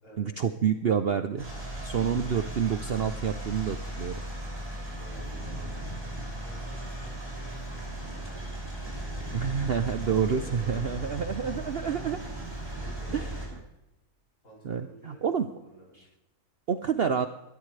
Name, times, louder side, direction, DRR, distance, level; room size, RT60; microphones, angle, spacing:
voice 1, 0.2-1.4 1.8-4.2 9.3-12.2 13.1-13.3 14.6-15.5 16.7-17.3, right 7 dB, 55° right, 9 dB, 0.7 m, -28 dB
sound 1, 1.4-13.5, right 1 dB, 15° right, 6.1 m, -37 dB
voice 2, 4.9-5.7 6.4-8.6 10.0-11.1 12.7-13.6 14.4-15.9, equal, 60° left, -3 dB, 7.0 m, -50 dB
20.0 x 13.5 x 3.3 m, 0.92 s
omnidirectional pair, 1.6 m